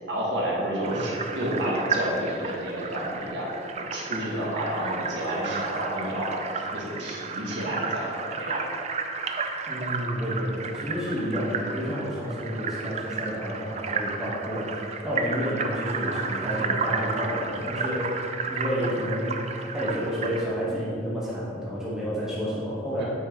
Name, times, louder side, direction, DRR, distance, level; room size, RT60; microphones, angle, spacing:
voice 1, 0.1-3.5 3.9-8.6 23.0-23.1, right 1 dB, 65° right, -5 dB, 1.7 m, -30 dB
sound 1, 0.8-20.4, right 5 dB, 35° right, 0.4 m, -33 dB
voice 2, 9.7-18.2 18.5-19.4 19.7-23.0, equal, ahead, -9 dB, 1.4 m, -30 dB
8.9 x 4.8 x 3.8 m, 2.5 s
head